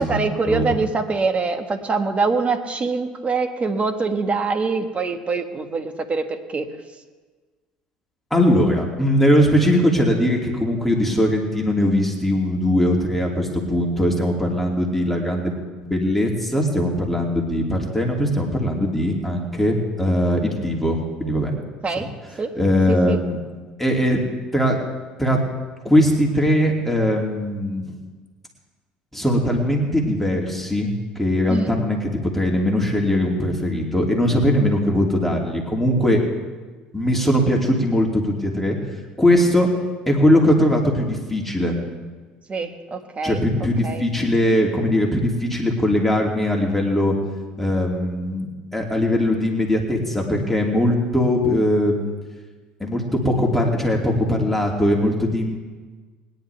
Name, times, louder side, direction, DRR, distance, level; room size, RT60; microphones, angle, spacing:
voice 1, 0.0-6.7 21.8-22.1 22.4-22.5 22.9-23.2 31.5-31.7 42.5-43.4 43.8-44.0, right 4 dB, 30° right, 6 dB, 1.5 m, -24 dB
voice 2, 8.3-15.5 15.8-21.5 22.5-23.4 23.8-24.2 24.5-24.8 25.2-25.4 25.8-27.9 29.1-36.2 36.9-38.8 39.2-39.7 40.1-41.8 43.2-47.2 47.6-52.1 52.8-55.6, left 1 dB, 5° left, -1 dB, 2.7 m, -20 dB
20.5 x 10.5 x 3.5 m, 1.3 s
hypercardioid pair, 70°, 4 cm